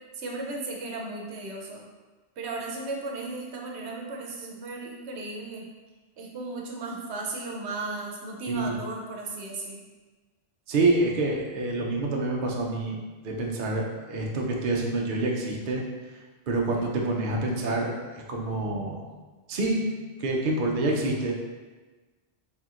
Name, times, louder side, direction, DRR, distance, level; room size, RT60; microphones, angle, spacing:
voice 1, 0.1-1.8 2.4-5.6 6.2-9.8, right 3 dB, 80° right, -1 dB, 1.0 m, -35 dB
voice 2, 10.7-13.0 13.2-15.8 16.1-19.0 19.5-19.9 20.2-21.3, right 2 dB, 60° right, -1 dB, 0.7 m, -27 dB
4.4 x 3.7 x 2.4 m, 1.3 s
omnidirectional pair, 1.1 m